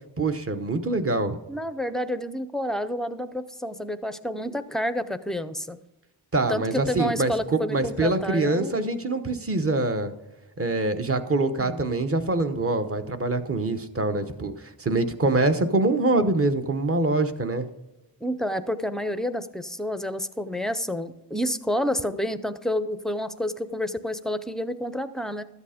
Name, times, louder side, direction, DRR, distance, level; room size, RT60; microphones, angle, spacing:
voice 1, 0.2-1.4 6.3-10.1 10.6-14.5 14.8-17.7, right 2 dB, 30° right, 8 dB, 0.9 m, -24 dB
voice 2, 1.5-5.8 6.5-8.8 11.6-11.8 18.2-25.4, equal, ahead, 11 dB, 0.4 m, -29 dB
13.0 x 8.2 x 5.0 m, 0.98 s
wide cardioid pair, 140°, 43 cm